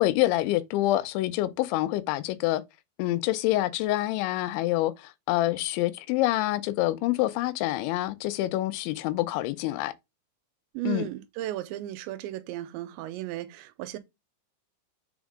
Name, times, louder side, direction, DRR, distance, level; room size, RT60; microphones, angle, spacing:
voice 1, 0.0-2.6 3.0-9.9 10.9-11.1, left 16 dB, 80° left, 2.9 m, -26 dB
voice 2, 10.7-14.0, right 14 dB, 80° right, 2.8 m, -35 dB
7.5 x 6.1 x 3.6 m
omnidirectional pair, 5.5 m